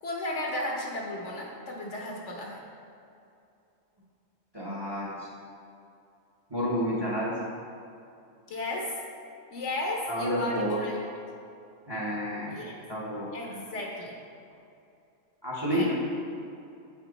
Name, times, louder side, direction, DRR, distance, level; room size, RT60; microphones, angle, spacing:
voice 1, 0.0-2.6 8.5-9.0 9.5-10.9 12.5-12.7 13.3-14.1 15.7-15.9, left 1 dB, 60° left, -1 dB, 1.2 m, -34 dB
voice 2, 4.5-5.3 6.5-7.3 10.1-10.8 11.9-12.6 12.9-13.3 15.4-15.9, equal, 20° right, -5 dB, 1.0 m, -30 dB
8.1 x 4.6 x 4.0 m, 2.6 s
omnidirectional pair, 1.4 m